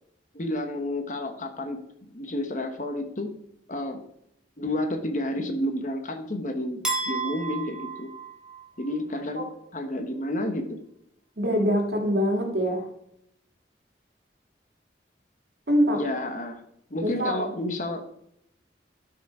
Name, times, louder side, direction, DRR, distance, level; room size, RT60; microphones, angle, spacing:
voice 1, 0.3-1.8 2.1-3.3 3.7-4.0 4.6-8.1 8.8-10.8 15.9-16.6 16.9-18.2, left 1 dB, 45° left, 6 dB, 1.1 m, -30 dB
sound 1, 6.8-9.0, right 3 dB, 5° right, 2.2 m, -32 dB
voice 2, 11.4-12.9 15.7-16.0 17.0-17.5, equal, 65° right, 2 dB, 2.0 m, -24 dB
12.0 x 4.8 x 4.9 m, 0.76 s
head